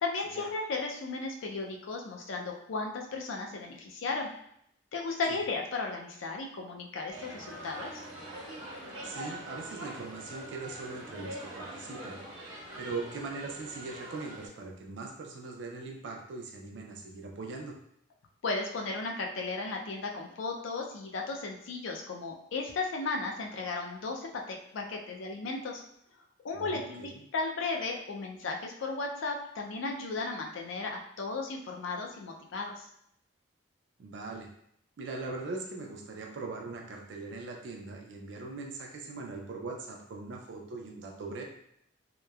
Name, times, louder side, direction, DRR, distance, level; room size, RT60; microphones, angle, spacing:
voice 1, 0.0-4.3 4.9-8.0 18.4-25.8 26.4-32.8, left 3 dB, 70° left, 1 dB, 0.4 m, -35 dB
sound 1, 7.1-14.5, right 1 dB, 85° right, 0.9 m, -43 dB
voice 2, 9.0-12.2 12.8-17.8 26.5-27.2 34.0-34.5 35.0-41.4, right 3 dB, 60° right, 1 dB, 0.4 m, -40 dB
2.9 x 2.0 x 2.3 m, 0.73 s
head